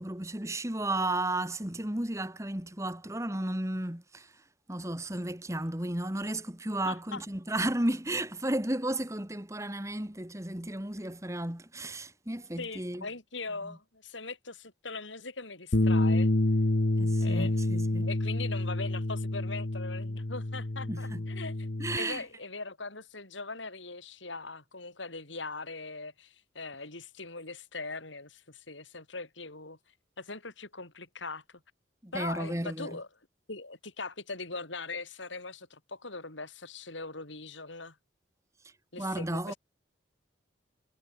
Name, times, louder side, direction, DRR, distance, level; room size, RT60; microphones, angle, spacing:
voice 1, 0.0-4.4 4.7-13.1 13.6-13.8 17.0-18.1 20.9-21.2 21.8-22.2 32.0-32.9 39.0-39.5, right 1 dB, 15° right, 2.0 m, -33 dB
voice 2, 6.8-7.2 12.6-16.3 17.2-21.7 22.0-29.8 30.2-31.6 32.1-33.1 33.5-38.0 38.9-39.6, left 3 dB, 75° left, 5.4 m, -41 dB
Bass guitar, 15.7-22.0, left 1 dB, 60° left, 1.2 m, -28 dB
head